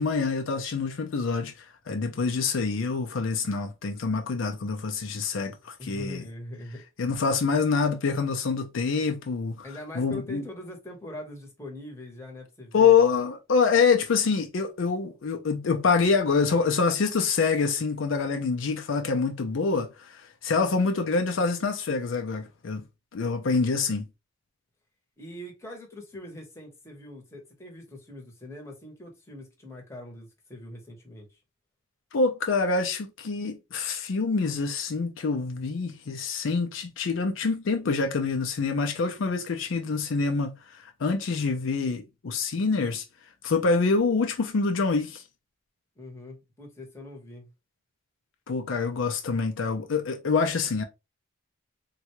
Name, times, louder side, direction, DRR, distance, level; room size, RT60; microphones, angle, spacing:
voice 1, 0.0-6.2 7.0-9.6 9.9-10.4 12.7-22.8 23.1-24.1 32.1-43.0 43.4-45.2 48.5-50.8, left 4 dB, 65° left, 0.5 m, -26 dB
voice 2, 5.8-6.8 9.6-13.0 25.2-31.4 46.0-47.5, left 1 dB, 15° left, 0.9 m, -42 dB
3.6 x 2.2 x 2.9 m
head